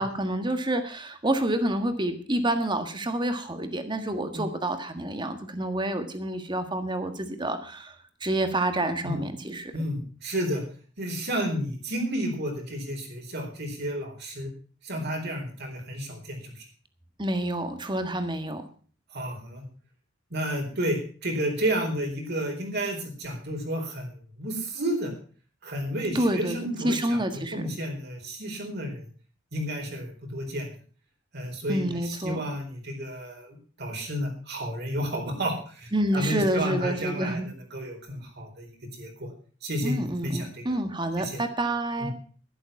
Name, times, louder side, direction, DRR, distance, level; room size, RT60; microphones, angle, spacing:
voice 1, 0.0-7.9 8.2-9.7 17.2-18.6 26.1-27.7 31.7-32.4 35.9-37.5 39.8-42.1, right 1 dB, 25° right, 8 dB, 1.6 m, -28 dB
voice 2, 9.7-10.6 11.0-14.5 14.8-16.6 19.1-19.6 20.3-25.1 25.6-27.2 27.5-29.1 29.5-30.7 31.3-38.7 39.0-39.3 39.6-40.6 41.2-41.4 42.0-42.1, equal, 55° right, 2 dB, 4.3 m, -31 dB
11.5 x 11.5 x 5.8 m, 0.42 s
head